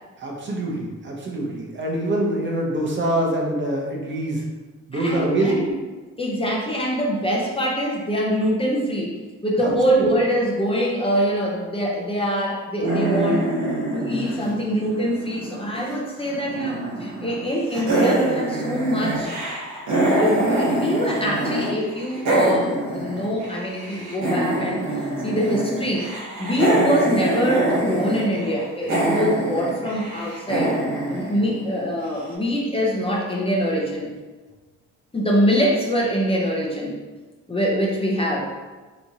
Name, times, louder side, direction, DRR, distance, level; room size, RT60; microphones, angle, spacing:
voice 1, 0.2-4.4 4.9-5.6 9.6-9.7, right 1 dB, 40° right, -1 dB, 0.8 m, -24 dB
voice 2, 4.9-5.7 6.2-13.5 13.9-19.3 20.0-26.1 26.4-30.8 31.1-34.1 35.1-37.0 37.5-38.5, equal, 20° left, -3 dB, 0.7 m, -24 dB
sound 1, 12.8-15.9 16.2-17.4 17.7-21.7 21.9-32.0, right 1 dB, 70° right, 1.3 m, -25 dB
3.4 x 3.0 x 2.7 m, 1.3 s
cardioid pair, 90°, 30 cm